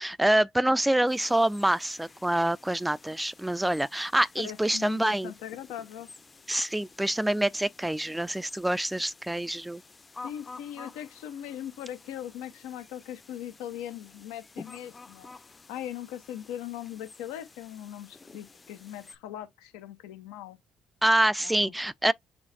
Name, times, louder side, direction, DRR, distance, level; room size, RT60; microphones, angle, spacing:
voice 1, 0.0-5.3 6.5-9.8 21.0-22.1, right 1 dB, 10° right, 0.4 m, -26 dB
sound 1, 1.1-19.2, left 4 dB, 30° left, 0.7 m, -51 dB
voice 2, 4.4-6.1 10.2-15.3 15.7-20.6 21.4-21.7, left 11 dB, 80° left, 1.0 m, -40 dB
6.3 x 3.1 x 2.5 m
hypercardioid pair, 55°, 0 cm